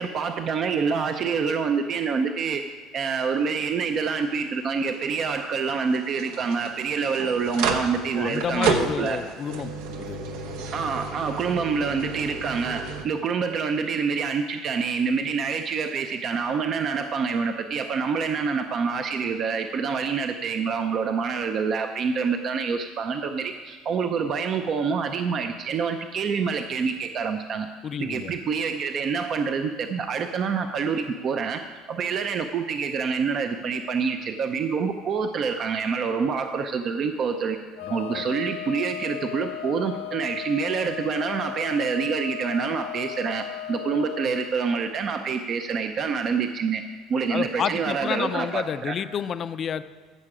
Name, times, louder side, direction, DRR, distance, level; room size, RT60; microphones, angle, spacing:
voice 1, 0.0-2.6 2.9-9.2 10.7-27.7 28.0-31.6 31.9-37.6 37.9-46.8 47.1-49.0, right 5 dB, 45° right, 7 dB, 0.6 m, -27 dB
sound 1, 3.3-13.0, right 5 dB, 80° right, 1.0 m, -32 dB
voice 2, 8.1-9.7 10.0-10.2 27.8-28.3 37.8-38.2 47.3-49.8, left 8 dB, 40° left, 13 dB, 0.4 m, -30 dB
Wind instrument woodwind instrument, 37.7-44.5, left 12 dB, 85° left, 0.6 m, -36 dB
14.5 x 6.6 x 4.9 m, 1.5 s
supercardioid pair, 110°, 0 cm